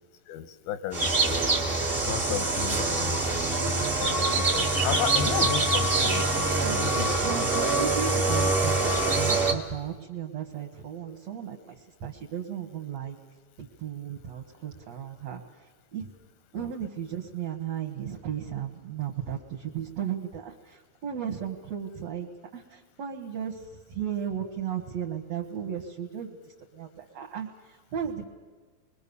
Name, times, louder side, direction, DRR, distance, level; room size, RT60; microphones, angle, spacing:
voice 1, 0.3-1.4 2.0-3.3 4.0-7.7 16.5-16.7, left 10 dB, 90° left, 11 dB, 2.9 m, -34 dB
sound 1, 0.9-9.5, right 2 dB, 25° right, 1.2 m, -25 dB
voice 2, 6.6-13.2 13.6-16.1 16.5-22.3 22.5-26.4 26.7-28.3, right 8 dB, 60° right, 0 dB, 2.2 m, -35 dB
28.0 x 21.5 x 7.0 m, 1.3 s
omnidirectional pair, 4.2 m